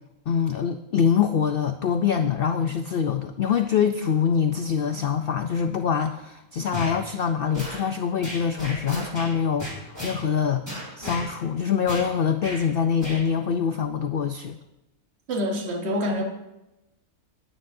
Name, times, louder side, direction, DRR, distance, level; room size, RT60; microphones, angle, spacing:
voice 1, 0.3-10.6 11.0-14.6, left 7 dB, 85° left, 7 dB, 0.5 m, -24 dB
sound 1, 6.7-7.0 7.5-7.8 8.2-9.3 9.6-10.2 10.7-11.2 11.9-12.1 12.4-12.6 13.0-13.2, left 1 dB, 10° right, 5.2 m, -34 dB
voice 2, 15.3-16.2, equal, 45° right, 2 dB, 1.6 m, -26 dB
20.0 x 9.1 x 2.7 m, 0.94 s
omnidirectional pair, 1.6 m